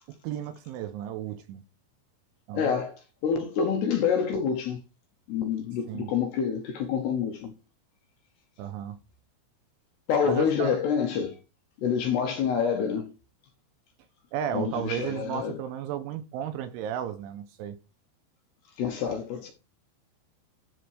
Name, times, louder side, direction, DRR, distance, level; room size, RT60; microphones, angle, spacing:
voice 1, 0.1-1.6 2.5-2.8 5.9-6.1 8.6-9.0 10.2-10.8 14.3-17.8, right 9 dB, 85° right, 2.9 m, -34 dB
voice 2, 2.5-4.8 5.3-7.5 10.1-11.4 11.8-13.1 14.5-15.5 18.8-19.5, left 7 dB, 75° left, 2.5 m, -27 dB
13.0 x 4.5 x 4.8 m
omnidirectional pair, 6.0 m